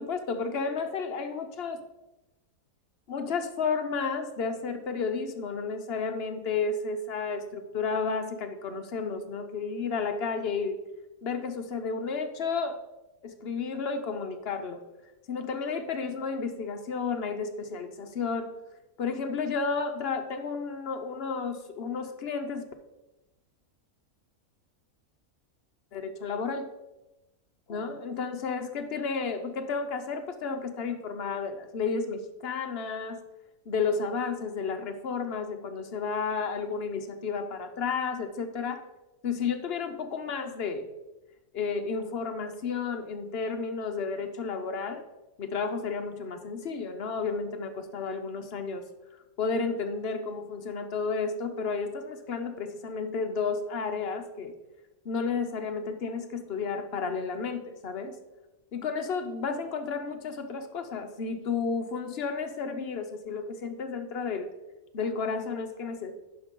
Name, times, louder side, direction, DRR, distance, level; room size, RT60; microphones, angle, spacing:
voice 1, 0.0-1.8 3.1-10.8 11.2-12.8 13.2-14.8 15.3-18.5 19.0-22.7 25.9-26.7 27.7-33.2 33.7-38.8 39.2-40.9 41.5-45.0 45.4-48.9 49.4-54.5 55.0-58.2 58.7-64.5 64.9-66.1, left 5 dB, 55° left, 7 dB, 0.9 m, -32 dB
11.0 x 5.2 x 3.8 m, 0.99 s
omnidirectional pair, 1.5 m